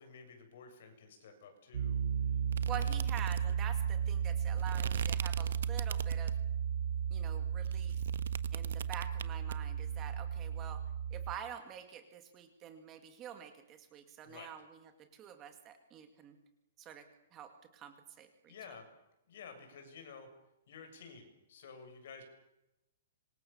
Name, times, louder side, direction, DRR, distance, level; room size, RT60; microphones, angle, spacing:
voice 1, 0.0-2.0 2.3-2.4 2.7-3.0 14.2-14.5 18.5-18.9 19.3-20.3 20.7-22.2, left 5 dB, 50° left, 6 dB, 7.3 m, -52 dB
Piano, 1.7-11.3, right 8 dB, 80° right, 2.8 m, -34 dB
sound 1, 2.5-6.5 7.0-9.6, right 8 dB, 65° right, 1.2 m, -43 dB
voice 2, 2.7-6.3 7.1-8.0 8.5-10.8 11.1-14.8 15.1-16.4 16.8-17.0 17.3-18.5, right 9 dB, 15° right, 6 dB, 2.1 m, -47 dB
27.0 x 25.0 x 7.2 m, 0.91 s
hypercardioid pair, 180°, 0 cm